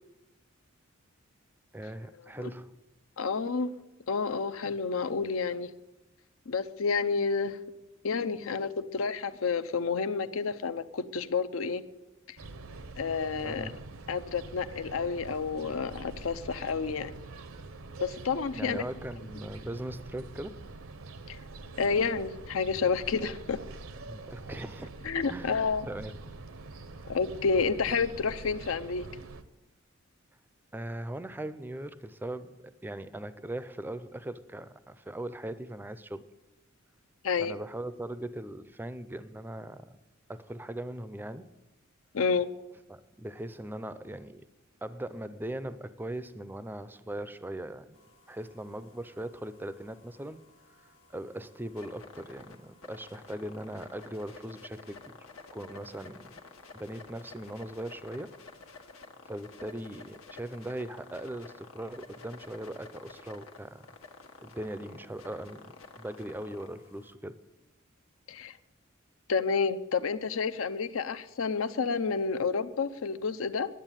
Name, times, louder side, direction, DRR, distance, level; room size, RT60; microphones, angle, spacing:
voice 1, 1.7-2.8 13.4-13.8 18.5-20.6 24.0-24.9 25.3-25.6 25.9-26.1 30.7-36.3 37.4-40.0 40.3-41.6 42.9-44.5 44.8-48.0 48.3-50.4 51.1-55.2 55.5-56.4 56.7-58.4 59.3-63.9 64.4-67.4, right 1 dB, 10° right, 0.5 m, -40 dB
voice 2, 3.2-3.7 4.1-5.7 6.5-7.6 8.0-11.8 12.3-12.4 13.0-13.7 14.1-17.1 18.0-18.8 21.3-21.4 21.8-23.6 25.0-25.8 27.1-29.1 37.2-37.6 42.1-42.5 68.3-68.6 69.3-73.7, left 5 dB, 70° left, 0.6 m, -30 dB
sound 1, 12.4-29.4, right 3 dB, 75° right, 0.8 m, -45 dB
sound 2, 47.9-67.1, left 3 dB, 85° left, 1.3 m, -52 dB
11.0 x 7.9 x 9.0 m
head